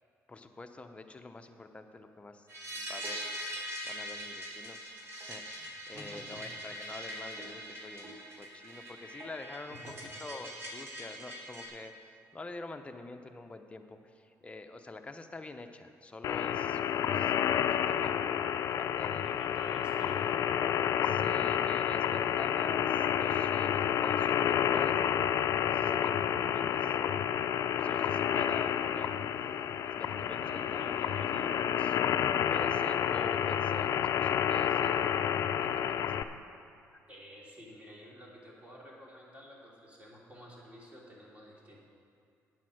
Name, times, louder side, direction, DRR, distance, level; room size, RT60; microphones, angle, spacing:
voice 1, 0.3-2.5 2.7-3.2 3.8-4.9 5.1-9.9 10.2-18.3 18.8-19.3 21.0-25.0 25.6-27.0 27.8-29.2 29.8-32.0 32.4-35.4 35.7-36.1, left 2 dB, 20° left, 6 dB, 0.8 m, -46 dB
sound 1, 2.5-11.7, equal, 45° right, 2.7 m, -42 dB
voice 2, 5.9-6.4 9.7-10.1 19.2-20.3 22.0-22.1 30.4-31.2 37.1-41.8, equal, 20° right, -4 dB, 3.0 m, -51 dB
sound 2, 16.2-36.2, left 9 dB, 65° left, 0.4 m, -29 dB
9.3 x 8.4 x 6.4 m, 2.5 s
cardioid pair, 90°, 6 cm